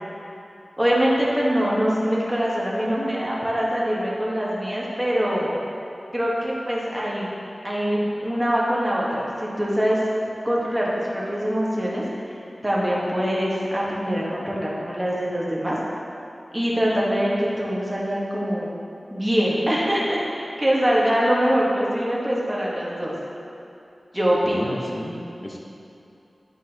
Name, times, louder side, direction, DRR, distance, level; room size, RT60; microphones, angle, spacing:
voice 1, 0.8-5.6 6.1-7.3 7.6-10.0 10.4-12.0 12.6-15.8 16.5-18.7 19.1-23.1 24.1-24.7, equal, 10° right, -5 dB, 1.3 m, -23 dB
voice 2, 24.4-25.6, equal, 25° left, -2 dB, 1.0 m, -33 dB
9.9 x 4.9 x 2.9 m, 2.8 s
wide cardioid pair, 85°, 0 cm